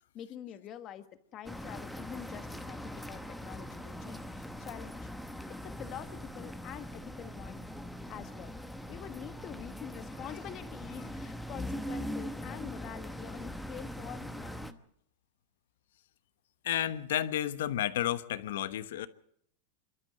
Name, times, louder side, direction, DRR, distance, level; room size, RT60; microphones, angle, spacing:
voice 1, 0.1-5.1 5.5-7.7 8.1-8.6 8.9-14.8, left 10 dB, 30° left, 1.4 m, -46 dB
sound 1, 1.4-14.7, equal, ahead, 1.0 m, -41 dB
voice 2, 16.6-19.1, left 12 dB, 85° left, 1.1 m, -31 dB
27.5 x 12.5 x 7.7 m
supercardioid pair, 155°, 0 cm